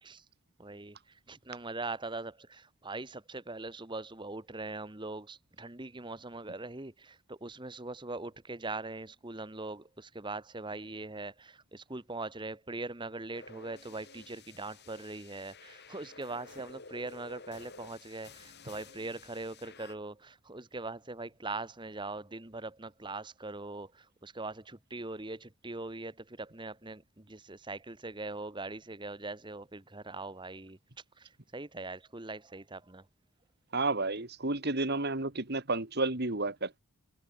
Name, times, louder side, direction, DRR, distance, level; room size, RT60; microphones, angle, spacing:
voice 1, 0.6-33.1, right 2 dB, 20° right, 1.3 m, -41 dB
sound 1, 13.3-19.9, left 4 dB, 50° left, 7.2 m, -52 dB
voice 2, 33.7-36.8, right 2 dB, 50° right, 2.4 m, -31 dB
head